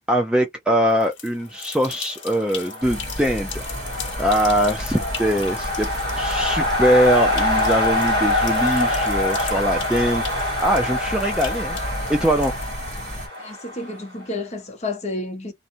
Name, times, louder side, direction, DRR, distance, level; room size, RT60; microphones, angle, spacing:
voice 1, 0.1-3.5 4.2-5.9 6.2-11.8 12.1-12.5, equal, 5° right, 0.3 m, -22 dB
sound 1, 0.9-13.4, left 7 dB, 85° left, 0.9 m, -39 dB
sound 2, 2.3-14.2, left 1 dB, 55° right, 1.5 m, -25 dB
sound 3, 2.8-13.3, equal, 35° right, 1.2 m, -33 dB
voice 2, 13.4-15.5, left 2 dB, 35° left, 0.7 m, -30 dB
2.6 x 2.1 x 2.7 m
head